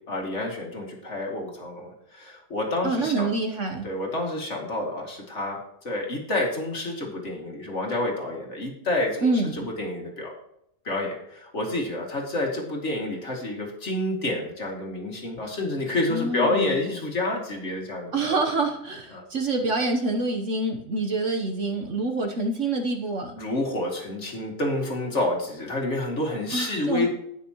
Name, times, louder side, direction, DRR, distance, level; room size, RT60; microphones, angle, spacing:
voice 1, 0.1-3.4 3.8-5.6 5.8-10.3 10.8-18.4 19.1-19.2 23.3-27.1, left 2 dB, 45° left, 0 dB, 2.5 m, -29 dB
voice 2, 2.8-3.9 9.2-9.7 16.1-16.8 18.1-23.4 26.5-27.1, right 2 dB, 50° right, 4 dB, 1.2 m, -26 dB
18.5 x 6.3 x 3.0 m, 0.79 s
omnidirectional pair, 1.7 m